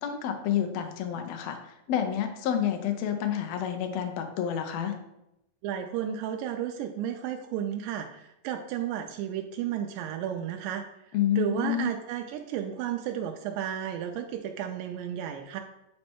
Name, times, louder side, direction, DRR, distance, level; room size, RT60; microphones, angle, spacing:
voice 1, 0.0-1.6 1.9-4.9 11.1-11.9, left 9 dB, 90° left, 5 dB, 1.5 m, -29 dB
voice 2, 5.6-10.9 11.4-15.6, right 9 dB, 85° right, 4 dB, 2.2 m, -33 dB
8.9 x 3.2 x 4.4 m, 0.85 s
omnidirectional pair, 3.9 m